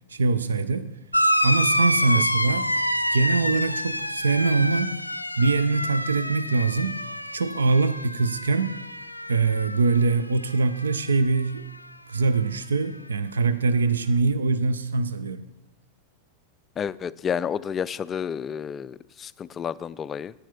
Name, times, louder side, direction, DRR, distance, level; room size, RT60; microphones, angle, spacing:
voice 1, 0.1-0.9 1.4-2.7 3.1-5.0 5.4-7.0 7.3-8.8 9.3-11.7 12.1-15.5, right 3 dB, 70° right, 0.5 m, -23 dB
sound 1, 1.1-10.1 10.4-11.2 12.3-12.4, equal, 90° left, 0.4 m, -27 dB
voice 2, 16.8-20.3, left 7 dB, 25° left, 0.3 m, -30 dB
9.0 x 8.9 x 5.9 m
figure-of-eight pair, 90°, 0 cm